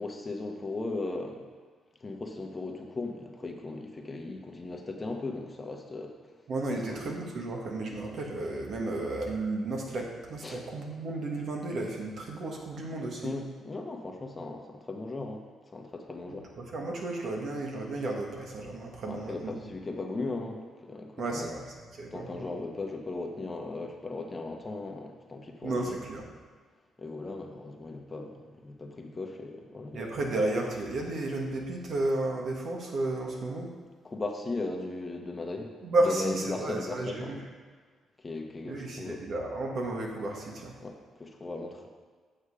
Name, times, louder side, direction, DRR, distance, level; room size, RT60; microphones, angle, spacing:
voice 1, 0.0-1.5 2.0-6.2 6.7-7.0 10.4-10.6 13.2-15.4 15.7-16.5 19.0-21.5 22.1-26.0 27.0-30.0 30.2-30.3 34.0-35.7 36.0-37.4 38.2-39.2 40.8-41.9, left 3 dB, 25° left, 2 dB, 1.2 m, -37 dB
voice 2, 6.5-13.3 16.3-19.6 21.2-21.7 22.0-22.4 25.6-26.2 29.9-33.7 35.8-37.4 38.7-40.7, right 2 dB, 60° right, 0 dB, 1.7 m, -33 dB
8.6 x 6.4 x 5.0 m, 1.5 s
cardioid pair, 90°, 0 cm